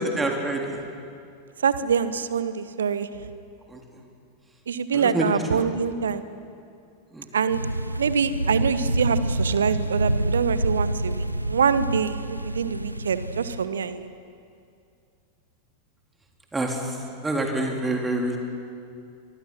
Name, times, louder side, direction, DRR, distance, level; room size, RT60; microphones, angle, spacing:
voice 1, 0.2-0.8 3.7-3.8 4.9-5.3 5.5-5.7 7.1-7.3 16.5-16.8 17.2-18.4, right 2 dB, 10° right, 1 dB, 3.7 m, -26 dB
voice 2, 1.6-3.2 4.7-6.2 7.3-7.6 8.0-14.1, right 6 dB, 65° right, 13 dB, 1.2 m, -25 dB
sound 1, 7.5-13.6, right 1 dB, 85° right, 0.7 m, -27 dB
25.5 x 24.5 x 6.2 m, 2.4 s
figure-of-eight pair, 90°, 0 cm